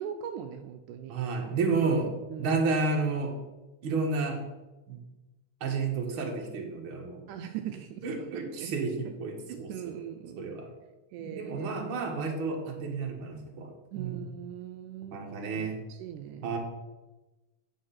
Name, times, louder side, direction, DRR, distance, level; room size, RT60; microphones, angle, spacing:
voice 1, 0.0-1.2 2.3-2.6 7.3-8.7 9.1-9.2 9.5-10.5 11.1-11.8 13.9-15.2 15.6-16.6, right 9 dB, 80° right, 7 dB, 2.1 m, -40 dB
voice 2, 1.1-2.1 2.4-3.4 3.8-4.4 4.9-5.0 5.6-7.2 8.0-9.9 10.4-10.7 11.2-13.7 14.0-14.2 15.1-15.8 16.4-16.6, right 4 dB, 45° right, 1 dB, 2.1 m, -31 dB
9.1 x 6.7 x 5.8 m, 1.1 s
omnidirectional pair, 3.6 m